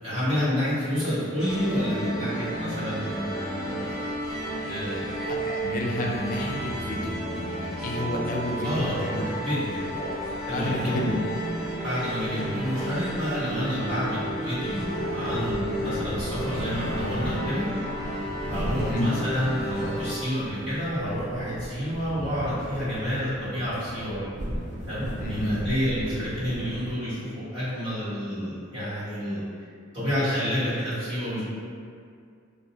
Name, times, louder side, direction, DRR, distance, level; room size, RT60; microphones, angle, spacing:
voice 1, 0.0-3.8 4.6-5.1 8.6-9.0 9.4-9.8 10.5-11.0 11.8-17.6 18.5-24.2 24.9-29.4 29.9-31.4, equal, 75° right, -13 dB, 1.3 m, -29 dB
sound 1, 1.4-20.1, right 1 dB, 60° right, 1.0 m, -32 dB
voice 2, 5.2-7.2 7.5-9.3 10.0-10.2 10.5-11.2 18.8-19.1 25.2-25.5, left 1 dB, 45° left, -1 dB, 0.3 m, -30 dB
sound 2, 14.5-27.2, equal, 40° right, 0.3 m, -37 dB
2.5 x 2.0 x 2.8 m, 2.3 s
head